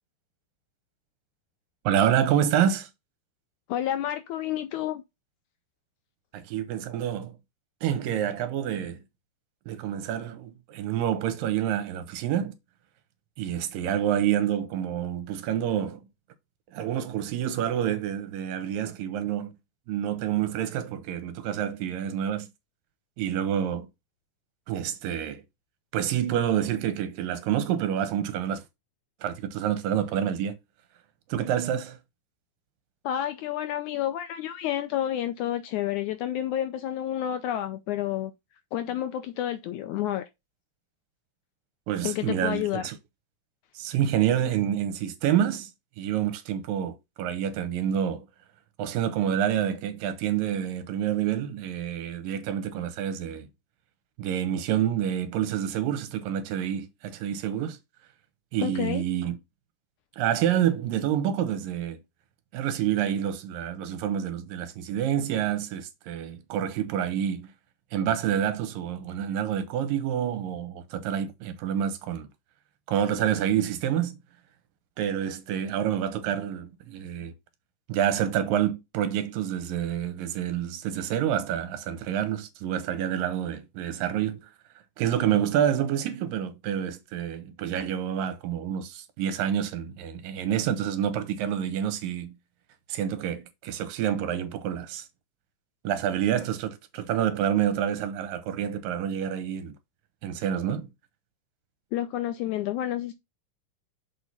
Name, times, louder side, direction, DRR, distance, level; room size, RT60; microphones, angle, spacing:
voice 1, 1.8-2.9 6.3-7.4 7.8-9.0 9.7-12.6 13.4-16.0 16.7-19.5 19.9-22.5 23.2-23.9 24.7-25.4 25.9-28.6 29.2-30.6 31.3-32.0 41.9-43.0 43.8-45.7 46.0-48.3 48.8-53.5 54.2-57.8 58.5-59.4 60.2-62.0 62.5-67.5 67.9-72.3 72.9-74.2 75.0-77.3 77.9-84.5 85.0-92.3 92.9-95.1 95.8-99.7 100.2-100.9, right 10 dB, 80° right, 2.7 m, -28 dB
voice 2, 3.7-5.0 33.0-38.3 38.7-40.2 42.0-42.8 58.6-59.0 101.9-103.1, left 12 dB, 80° left, 1.8 m, -30 dB
6.4 x 4.9 x 4.1 m
omnidirectional pair, 3.9 m